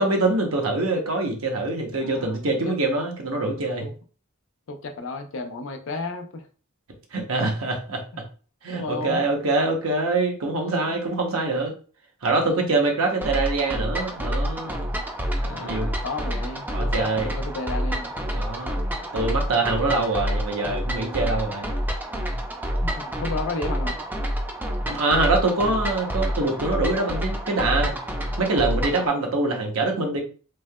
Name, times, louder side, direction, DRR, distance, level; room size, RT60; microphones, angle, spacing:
voice 1, 0.0-3.9 7.1-8.0 8.6-11.7 12.2-14.8 15.4-15.9 16.7-17.3 18.3-18.8 19.1-21.7 24.9-27.9 28.4-30.2, right 2 dB, 85° right, 2 dB, 0.8 m, -24 dB
voice 2, 1.9-2.5 3.8-3.9 4.7-6.5 8.7-9.2 10.4-11.0 12.4-12.7 15.4-18.1 22.8-24.0, left 3 dB, 65° left, 6 dB, 0.5 m, -33 dB
sound 1, 13.2-29.1, equal, 10° right, 0.3 m, -28 dB
3.2 x 2.7 x 2.2 m, 0.39 s
head